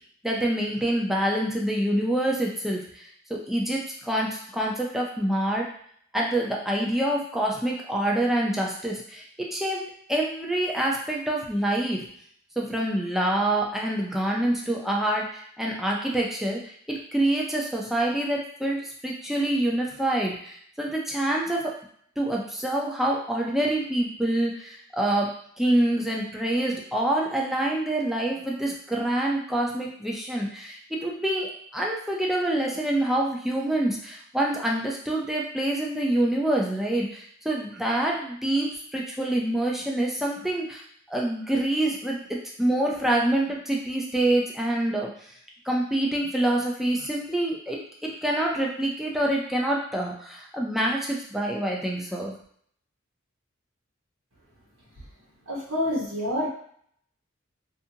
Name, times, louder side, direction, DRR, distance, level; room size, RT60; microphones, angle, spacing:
voice 1, 0.2-5.7 6.1-9.2 9.5-12.0 12.6-21.7 22.2-40.8 41.1-42.2 42.6-45.3 45.6-52.3, right 1 dB, ahead, -2 dB, 0.5 m, -26 dB
voice 2, 55.5-56.5, left 1 dB, 90° right, -7 dB, 1.0 m, -27 dB
2.6 x 2.5 x 2.7 m, 0.62 s
head